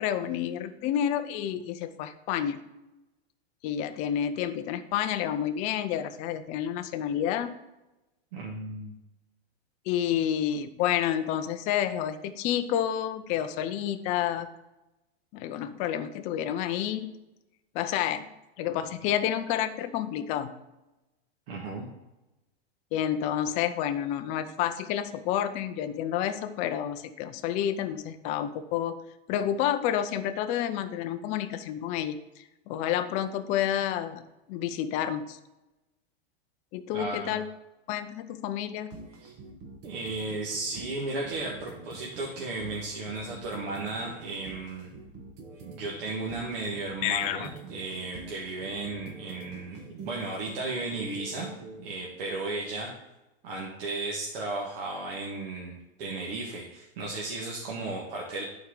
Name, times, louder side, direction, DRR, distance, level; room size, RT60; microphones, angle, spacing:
voice 1, 0.0-2.6 3.6-7.5 9.9-14.5 15.3-17.2 17.7-18.3 18.6-20.5 22.9-29.0 29.3-34.2 34.5-35.4 36.7-37.4 37.9-38.9 47.0-47.5, left 10 dB, 25° left, 10 dB, 0.4 m, -29 dB
voice 2, 8.3-8.9 21.5-21.8 36.9-37.3 39.2-39.3 39.8-44.9 45.6-51.5 51.8-52.9 53.4-58.4, right 3 dB, 60° right, -3 dB, 1.7 m, -35 dB
sound 1, 38.9-51.8, right 3 dB, 35° right, 1.2 m, -46 dB
11.5 x 4.6 x 3.8 m, 1.0 s
supercardioid pair, 155°, 31 cm